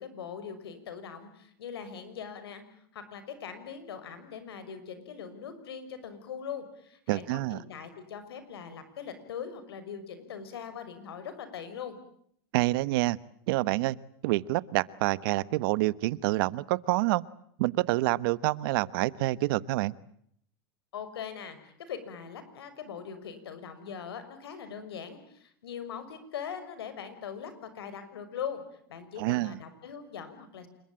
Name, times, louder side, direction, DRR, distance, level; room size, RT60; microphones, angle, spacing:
voice 1, 0.0-2.6 2.9-12.0 20.9-28.6 28.9-30.7, left 7 dB, 90° left, 10 dB, 6.1 m, -41 dB
voice 2, 7.1-7.6 12.5-13.2 13.5-14.0 14.2-17.2 17.6-19.9 29.2-29.6, right 19 dB, 65° right, 18 dB, 1.2 m, -27 dB
28.0 x 22.5 x 8.9 m, 0.68 s
supercardioid pair, 125°, 13 cm